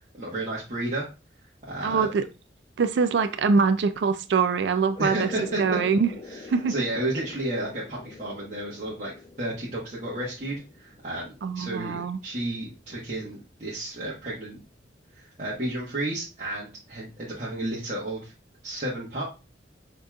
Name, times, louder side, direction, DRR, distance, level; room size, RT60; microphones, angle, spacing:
voice 1, 0.2-1.1 1.6-2.1 5.0-5.6 6.3-6.4 6.7-9.1 9.4-14.6 15.1-18.3 18.6-19.2, right 1 dB, 40° right, -8 dB, 1.3 m, -32 dB
voice 2, 1.8-2.2 2.8-5.3 5.6-6.1 6.5-6.7 11.4-12.2, right 5 dB, 70° right, 10 dB, 0.4 m, -23 dB
sound 1, 4.9-12.1, left 2 dB, 25° left, 0.4 m, -44 dB
6.6 x 3.0 x 2.3 m, 0.30 s
head